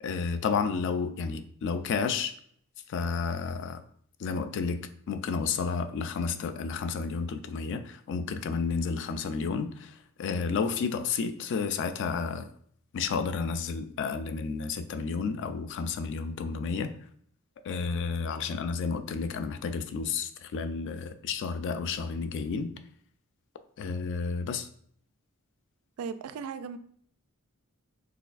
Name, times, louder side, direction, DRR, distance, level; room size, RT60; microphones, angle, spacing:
voice 1, 0.0-2.3 2.9-3.8 4.2-4.8 5.1-12.5 12.9-16.9 17.6-22.7 23.8-24.7, left 5 dB, 55° left, 10 dB, 0.3 m, -31 dB
voice 2, 26.0-26.8, right 6 dB, 75° right, 11 dB, 0.3 m, -36 dB
4.1 x 3.2 x 2.4 m, 0.62 s
head